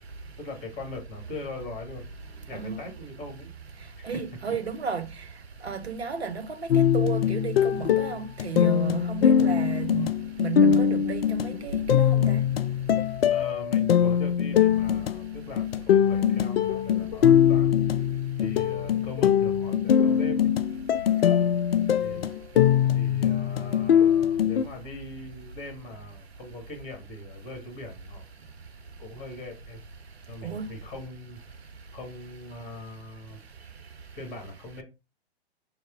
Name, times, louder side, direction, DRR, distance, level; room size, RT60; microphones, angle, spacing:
voice 1, 0.4-2.1 2.5-3.5 4.0-4.2 9.4-10.2 13.3-17.8 18.4-20.5 22.0-22.4 22.9-28.2 29.0-29.8 30.3-31.4 31.9-33.4 34.2-34.8, left 2 dB, 25° left, 1.5 m, -41 dB
voice 2, 4.0-5.1 5.6-10.1 10.4-12.4 21.3-21.4 30.4-30.7, right 6 dB, 75° right, 0.7 m, -33 dB
sound 1, 6.7-24.6, left 9 dB, 65° left, 0.4 m, -22 dB
5.3 x 2.0 x 3.5 m
figure-of-eight pair, 110°, 32 cm